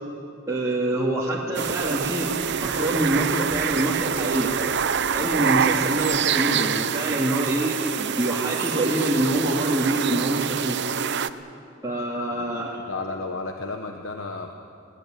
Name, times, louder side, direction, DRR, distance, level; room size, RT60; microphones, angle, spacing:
voice 1, 0.5-2.3 2.6-4.5 5.1-10.8 11.8-12.8, right 1 dB, 15° right, -5 dB, 2.5 m, -25 dB
sound 1, 1.5-11.3, right 7 dB, 60° right, 0.7 m, -26 dB
voice 2, 12.9-14.5, left 3 dB, 70° left, 4 dB, 1.3 m, -32 dB
22.0 x 18.0 x 9.2 m, 2.7 s
head